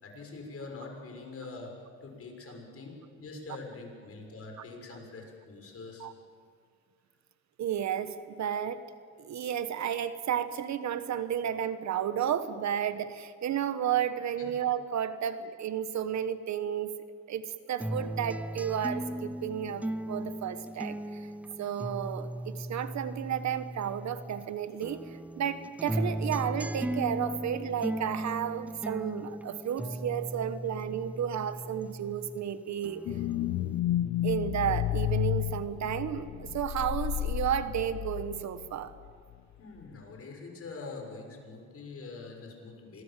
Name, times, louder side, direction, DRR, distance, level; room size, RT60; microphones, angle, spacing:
voice 1, 0.0-6.1 14.4-14.6 39.6-43.0, left 3 dB, 50° left, 2 dB, 6.4 m, -44 dB
voice 2, 7.6-8.8 9.2-16.9 17.3-21.3 21.6-33.0 34.2-38.9, right 9 dB, 65° right, 12 dB, 1.3 m, -32 dB
sound 1, 17.8-24.4 24.8-32.4 32.8-33.8, right 1 dB, 5° right, 0.5 m, -37 dB
sound 2, 33.1-38.7 39.1-39.2, left 14 dB, 70° left, 0.6 m, -31 dB
25.5 x 21.5 x 7.5 m, 2.1 s
cardioid pair, 90°, 30 cm